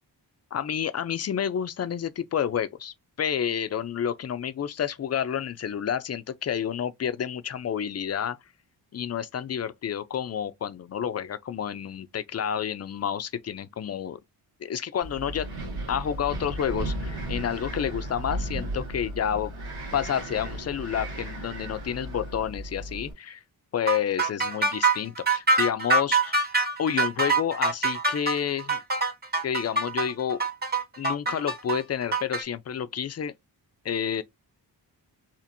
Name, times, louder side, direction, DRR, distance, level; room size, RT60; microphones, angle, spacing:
voice 1, 0.5-8.4 8.9-14.2 14.6-15.5 15.9-19.5 19.9-23.4 23.7-26.4 26.8-28.8 29.4-30.4 31.0-33.3 33.8-34.2, left 8 dB, 40° left, 0.5 m, -29 dB
Wind, 15.0-23.1, right 1 dB, 60° right, 1.7 m, -35 dB
sound 1, 23.9-32.4, right 3 dB, 25° right, 0.9 m, -24 dB
4.3 x 2.5 x 2.5 m
cardioid pair, 85°, 42 cm